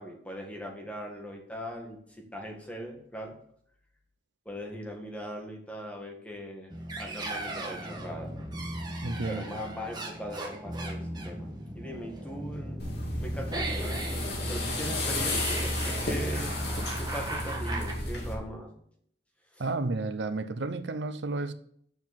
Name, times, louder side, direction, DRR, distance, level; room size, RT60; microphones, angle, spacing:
voice 1, 0.0-3.4 4.5-6.7 7.0-8.4 9.3-12.9 13.2-14.0 14.5-18.8 19.5-19.6, equal, 10° left, 1.8 m, -40 dB
sound 1, 6.7-17.9, right 1 dB, 25° right, 1.5 m, -37 dB
voice 2, 9.0-9.4 19.6-21.5, right 3 dB, 80° right, 0.7 m, -32 dB
sound 2, 12.8-18.3, left 1 dB, 65° left, 2.7 m, -32 dB
6.9 x 6.1 x 7.3 m
head